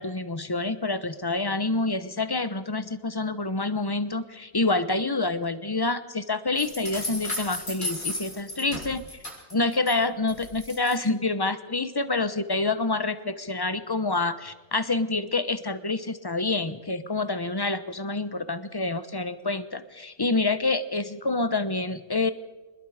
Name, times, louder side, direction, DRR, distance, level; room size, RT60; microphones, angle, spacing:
voice 1, 0.0-9.1 9.5-22.3, left 3 dB, 20° left, 12 dB, 0.9 m, -27 dB
sound 1, 6.6-9.9 10.3-11.0, left 1 dB, 65° left, 5.8 m, -34 dB
24.5 x 21.0 x 5.0 m, 1.2 s
omnidirectional pair, 1.4 m